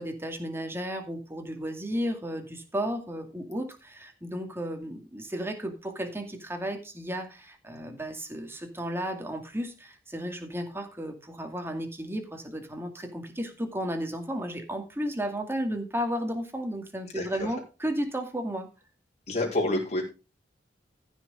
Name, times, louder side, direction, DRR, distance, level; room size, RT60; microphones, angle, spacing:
voice 1, 0.0-18.7, equal, 15° right, 4 dB, 2.3 m, -33 dB
voice 2, 17.1-17.5 19.3-20.0, left 2 dB, 40° left, -1 dB, 4.7 m, -28 dB
15.0 x 6.4 x 5.0 m, 0.31 s
head